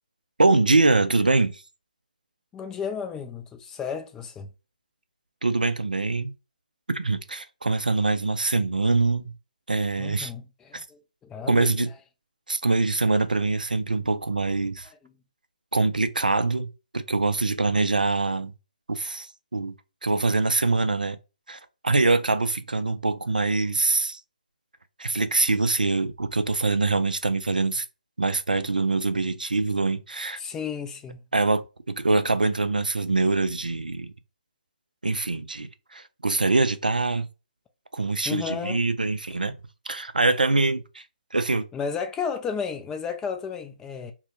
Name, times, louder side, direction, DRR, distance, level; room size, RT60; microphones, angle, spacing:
voice 1, 0.4-1.6 5.4-6.3 6.9-9.3 9.7-10.3 10.7-10.8 11.5-11.9 12.5-14.9 15.7-16.7 16.9-18.5 18.9-19.7 20.0-21.2 21.5-24.2 25.0-27.8 28.2-30.4 31.3-34.1 35.0-37.3 37.9-39.5 39.9-41.0 41.3-41.6, right 3 dB, 85° right, 0.4 m, -24 dB
voice 2, 2.5-4.5 10.0-11.9 14.9-15.0 30.4-31.2 38.3-38.8 41.7-44.1, left 6 dB, 10° left, 0.3 m, -33 dB
2.1 x 2.0 x 2.8 m
figure-of-eight pair, 140°, 4 cm